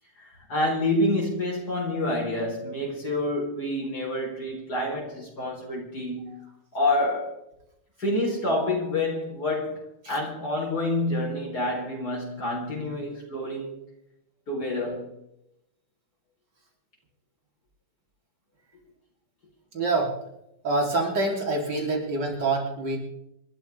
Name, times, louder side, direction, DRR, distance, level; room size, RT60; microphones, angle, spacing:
voice 1, 0.2-6.4 6.7-7.3 8.0-13.7 14.5-15.1, left 1 dB, 60° left, 5.1 m, -28 dB
voice 2, 19.7-20.2 20.6-23.0, right 2 dB, 75° right, 4.3 m, -26 dB
27.0 x 12.5 x 3.6 m
omnidirectional pair, 1.9 m